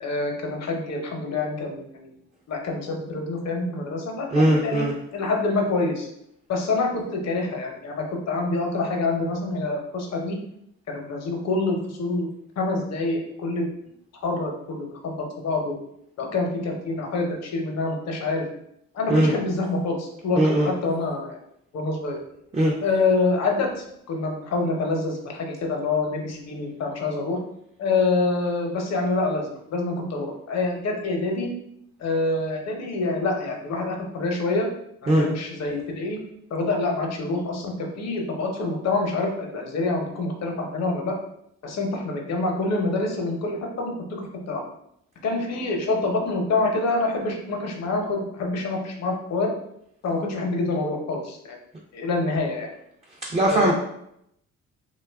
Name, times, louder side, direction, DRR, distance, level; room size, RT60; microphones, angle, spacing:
voice 1, 0.0-2.1 2.5-4.3 4.6-4.9 5.1-6.1 6.5-10.4 10.9-12.3 12.6-13.7 14.2-15.8 16.2-18.4 18.9-21.4 21.7-22.2 22.8-27.4 27.8-31.5 32.0-34.7 35.0-36.2 36.5-41.2 41.6-44.6 45.2-49.5 50.0-51.6 51.9-52.7 53.4-53.7, left 3 dB, 60° left, 1 dB, 0.8 m, -26 dB
voice 2, 4.3-5.0 19.1-19.3 20.4-20.7 22.5-22.7 35.1-35.3 53.1-53.7, right 1 dB, 20° right, -3 dB, 0.4 m, -20 dB
2.7 x 2.4 x 3.4 m, 0.75 s
cardioid pair, 90°, 30 cm